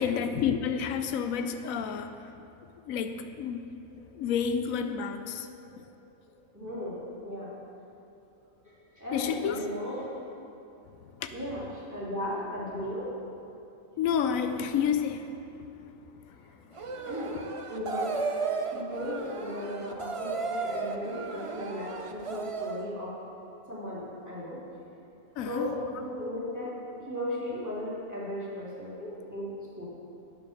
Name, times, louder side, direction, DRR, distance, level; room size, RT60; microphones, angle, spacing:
voice 1, 0.0-2.3 2.9-3.7 4.1-5.5 5.8-5.9 9.1-9.7 11.0-11.3 14.0-15.5 16.3-16.9 17.3-17.6 25.4-25.7, left 7 dB, 85° left, 8 dB, 1.0 m, -30 dB
voice 2, 6.5-7.5 8.6-10.1 11.3-13.1 17.0-17.3 17.7-18.2 18.7-23.2 23.7-24.6 25.4-26.7 27.1-29.9, left 1 dB, 15° right, -9 dB, 2.7 m, -36 dB
sound 1, 16.7-22.9, right 4 dB, 60° right, 0.3 m, -34 dB
9.9 x 6.0 x 6.5 m, 2.8 s
omnidirectional pair, 1.4 m